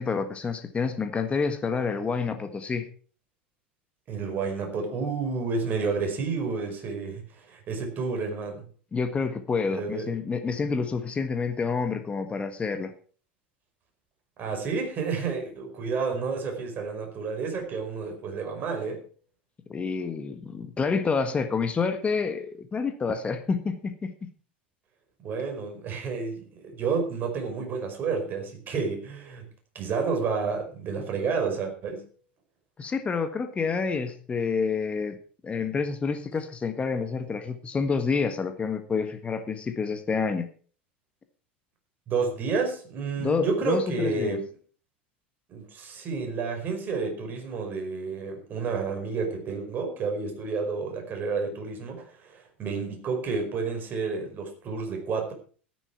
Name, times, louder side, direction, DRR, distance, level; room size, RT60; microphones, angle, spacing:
voice 1, 0.0-2.9 8.9-12.9 19.7-24.3 32.8-35.2 35.4-40.5 43.2-44.4, left 5 dB, 20° left, 9 dB, 1.5 m, -28 dB
voice 2, 4.1-8.7 9.7-10.1 14.4-19.0 25.2-29.5 29.8-32.1 42.1-44.4 45.5-55.3, right 4 dB, 35° right, 3 dB, 5.1 m, -30 dB
13.5 x 11.0 x 4.6 m, 0.41 s
figure-of-eight pair, 80°, 6 cm